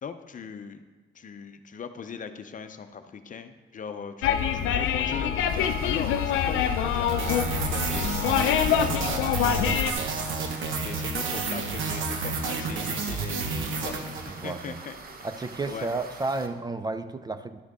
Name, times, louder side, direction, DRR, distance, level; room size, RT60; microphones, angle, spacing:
voice 1, 0.0-0.8 1.1-7.1 7.4-9.3 10.8-14.9 15.7-15.9, left 6 dB, 40° left, 8 dB, 0.6 m, -39 dB
sound 1, 4.2-9.9, left 8 dB, 90° left, 0.6 m, -25 dB
sound 2, 5.5-16.5, right 4 dB, 50° right, 1.0 m, -45 dB
sound 3, 7.1-14.6, right 4 dB, 80° right, 1.1 m, -30 dB
voice 2, 14.4-14.8 15.2-17.6, right 3 dB, 20° right, 11 dB, 0.4 m, -32 dB
11.5 x 6.4 x 3.6 m, 1.3 s
cardioid pair, 90°, 20 cm